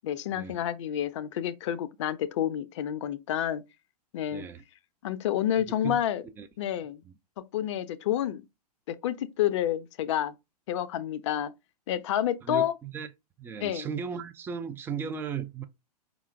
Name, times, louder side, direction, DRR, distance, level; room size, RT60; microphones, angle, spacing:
voice 1, 0.0-3.6 4.1-4.5 5.0-6.2 6.6-7.0 7.5-8.4 8.9-10.3 10.7-11.5 11.9-12.7 13.6-13.9, left 11 dB, 45° left, 0.5 m, -29 dB
voice 2, 4.3-4.6 5.7-6.0 6.4-6.5 7.0-7.1 12.4-13.1 13.4-15.6, right 6 dB, 10° right, 0.3 m, -36 dB
4.9 x 2.3 x 3.2 m
figure-of-eight pair, 105°, 21 cm